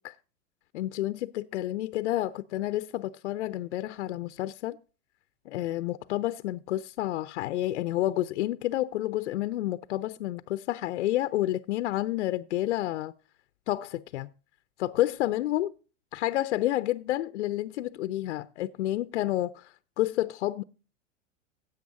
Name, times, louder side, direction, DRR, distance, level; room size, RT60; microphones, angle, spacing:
voice 1, 0.7-4.8 5.5-13.1 13.7-14.3 14.8-15.7 16.1-20.6, left 15 dB, 60° left, 0.6 m, -30 dB
16.0 x 8.1 x 2.6 m
hypercardioid pair, 95°, 39 cm